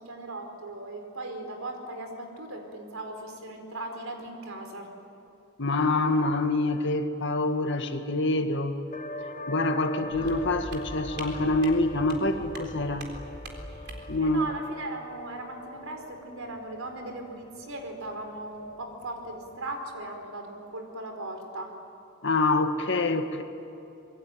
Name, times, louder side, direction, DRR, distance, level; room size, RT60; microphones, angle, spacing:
voice 1, 0.0-4.9 14.2-21.7, right 2 dB, 90° right, 4 dB, 4.7 m, -38 dB
voice 2, 5.6-8.8 9.5-13.1 14.1-14.5 22.2-23.4, left 2 dB, 60° left, 7 dB, 1.9 m, -26 dB
sound 1, 8.9-20.2, left 1 dB, 40° left, 1.1 m, -44 dB
sound 2, 10.1-14.2, right 1 dB, 55° right, 4.0 m, -41 dB
26.5 x 22.0 x 9.3 m, 2.9 s
head